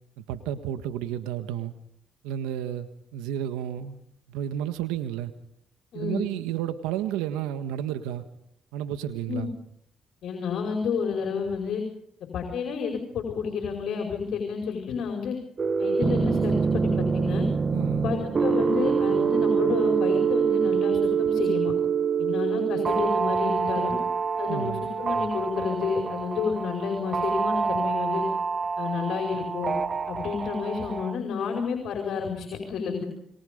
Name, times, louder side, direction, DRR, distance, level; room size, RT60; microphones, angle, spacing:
voice 1, 0.2-1.7 2.2-4.0 4.3-5.3 5.9-8.2 8.7-9.5 17.7-18.1 24.5-24.8, right 11 dB, 90° right, 10 dB, 1.6 m, -31 dB
voice 2, 5.9-6.3 9.3-9.5 10.2-11.8 12.3-15.3 15.8-17.5 18.0-21.7 22.2-24.0 24.4-28.2 28.8-29.7 30.1-33.0, left 6 dB, 70° left, 1 dB, 5.0 m, -30 dB
sound 1, 15.6-31.1, right 6 dB, 40° right, 1.0 m, -26 dB
27.5 x 22.5 x 5.3 m, 0.73 s
supercardioid pair, 60°, 0 cm